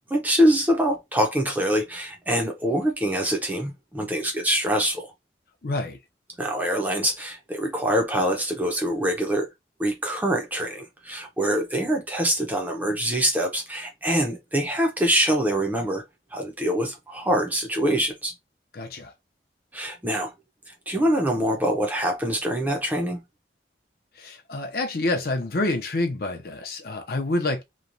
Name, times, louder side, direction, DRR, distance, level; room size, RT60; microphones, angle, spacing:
voice 1, 0.1-5.1 6.4-9.5 9.8-16.0 16.3-18.3 19.7-20.3 20.7-23.2, equal, 10° right, 0.6 m, -24 dB
voice 2, 5.6-6.0 18.7-19.1 24.1-27.6, left 2 dB, 55° left, 0.6 m, -27 dB
3.0 x 2.2 x 2.5 m
head